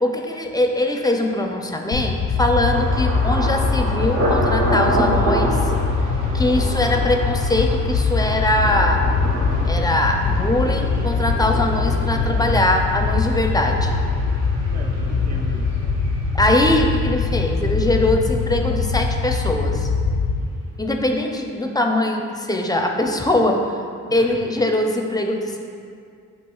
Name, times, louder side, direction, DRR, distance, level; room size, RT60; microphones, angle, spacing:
voice 1, 0.0-5.6 6.3-9.0 9.6-13.9 16.3-19.9 20.8-23.6 24.1-25.6, left 1 dB, 10° left, 3 dB, 0.4 m, -21 dB
sound 1, 1.9-20.4, left 4 dB, 90° left, 0.5 m, -22 dB
Thunder, 2.6-18.3 18.6-19.2 19.6-19.9, right 1 dB, 80° right, 1.0 m, -29 dB
voice 2, 14.6-15.8 17.4-17.9 24.1-24.4, right 2 dB, 55° right, 0 dB, 0.7 m, -39 dB
8.2 x 2.7 x 2.3 m, 2.3 s
cardioid pair, 60°, 31 cm